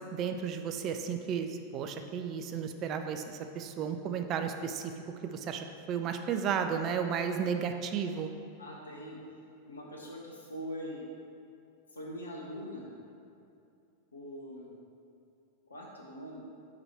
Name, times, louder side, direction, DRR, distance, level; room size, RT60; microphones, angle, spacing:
voice 1, 0.1-4.9 5.2-8.3, right 7 dB, 35° right, 6 dB, 0.4 m, -33 dB
voice 2, 8.6-9.2 9.6-11.0 11.9-12.9 14.1-14.7 15.7-16.4, equal, 75° left, -2 dB, 1.1 m, -42 dB
4.9 x 4.7 x 4.3 m, 2.5 s
figure-of-eight pair, 90°, 0 cm